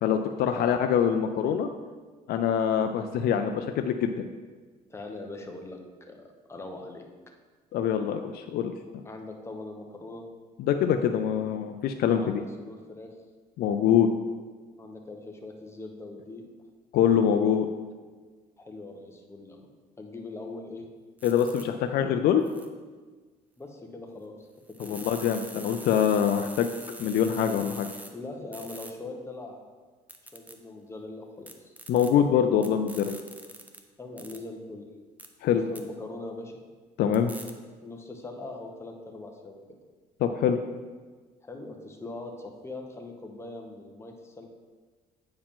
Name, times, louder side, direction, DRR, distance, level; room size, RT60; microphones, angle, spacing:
voice 1, 0.0-1.7 2.3-4.1 7.7-8.7 10.6-12.4 13.6-14.1 16.9-17.7 21.2-22.4 24.9-26.7 27.0-27.9 31.9-33.2 35.4-35.6 37.0-37.3 40.2-40.6, left 8 dB, 65° left, 6 dB, 0.4 m, -24 dB
voice 2, 4.9-7.0 9.0-10.3 12.2-13.1 14.8-16.4 18.6-19.7 20.0-20.9 23.6-24.4 24.8-25.0 28.1-29.6 30.3-31.7 34.0-34.9 35.5-36.5 37.8-39.6 41.4-44.5, left 2 dB, 15° left, 2 dB, 1.0 m, -41 dB
sound 1, 21.2-21.6 22.4-22.7 24.7-28.1 28.5-28.9 30.1-30.5 31.5-32.1 32.6-33.8 34.2-34.4 35.2-35.3 35.7-35.8 37.1-37.5, right 1 dB, 10° right, 0.7 m, -44 dB
8.5 x 4.8 x 3.7 m, 1.4 s
cardioid pair, 110°, 17 cm